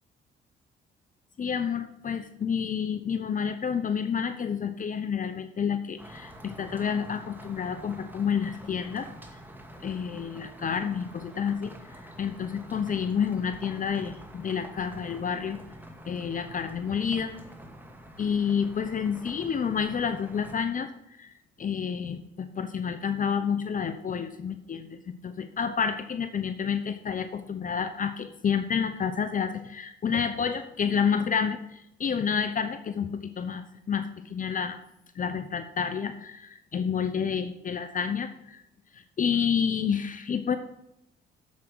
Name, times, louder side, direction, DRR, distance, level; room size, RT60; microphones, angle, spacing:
voice 1, 1.4-9.1 9.8-15.6 16.1-17.3 18.2-20.9 21.2-34.8 35.1-38.6 38.9-40.6, left 7 dB, 40° left, 10 dB, 0.8 m, -29 dB
sound 1, 6.0-20.6, equal, 10° right, 2.2 m, -47 dB
8.5 x 7.4 x 7.9 m, 0.81 s
cardioid pair, 90°, 20 cm